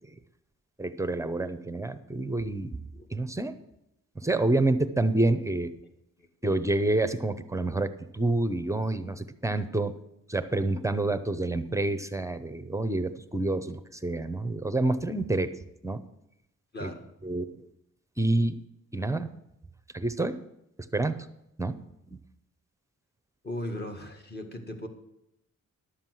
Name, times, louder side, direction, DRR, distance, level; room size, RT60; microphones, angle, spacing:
voice 1, 0.8-2.7 3.1-3.6 4.2-5.7 6.4-9.9 10.3-15.5 15.8-16.0 16.8-16.9 17.2-17.4 18.2-18.6 18.9-19.3 19.9-20.4 20.9-21.2 21.6-21.8 22.1-22.2, right 2 dB, 10° right, 11 dB, 0.6 m, -28 dB
voice 2, 16.7-17.1 23.4-24.9, left 1 dB, 30° left, 4 dB, 1.8 m, -37 dB
11.5 x 7.4 x 6.1 m, 0.84 s
wide cardioid pair, 125°, 34 cm